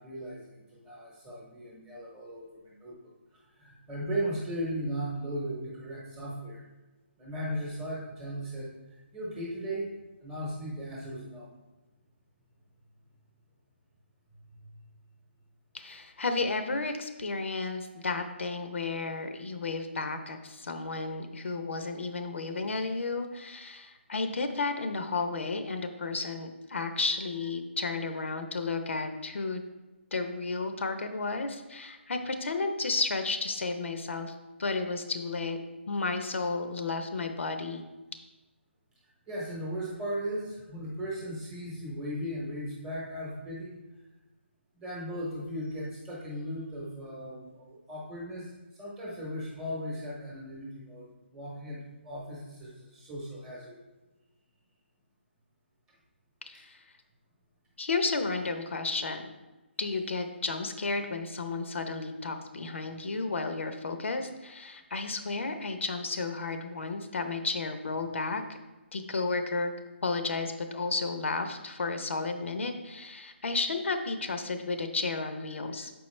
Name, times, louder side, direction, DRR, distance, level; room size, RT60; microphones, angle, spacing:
voice 1, 0.0-3.0 3.3-6.7 7.2-8.7 9.1-9.9 10.2-11.5 14.6-14.7 39.3-43.8 44.7-53.8, equal, 10° right, -4 dB, 0.9 m, -37 dB
voice 2, 15.7-29.6 30.1-35.6 35.9-37.8 56.5-56.8 57.8-59.3 59.8-68.4 68.9-69.7 70.0-75.9, left 3 dB, 80° left, 7 dB, 0.7 m, -32 dB
6.9 x 4.7 x 3.2 m, 1.1 s
hypercardioid pair, 170°, 7 cm